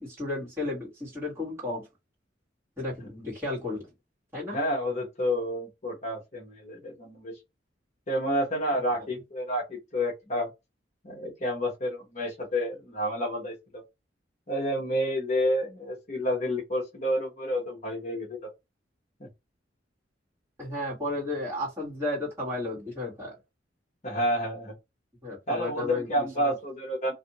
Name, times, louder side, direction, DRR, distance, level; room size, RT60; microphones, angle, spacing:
voice 1, 0.0-1.9 2.8-3.9 4.3-4.6 8.7-8.8 20.6-23.3 25.2-26.5, left 2 dB, 15° right, 1.6 m, -33 dB
voice 2, 4.5-7.4 8.1-10.5 11.0-13.8 14.5-18.5 19.2-19.3 24.0-24.7 25.5-27.1, equal, 40° left, 1.0 m, -29 dB
2.6 x 2.6 x 2.8 m
head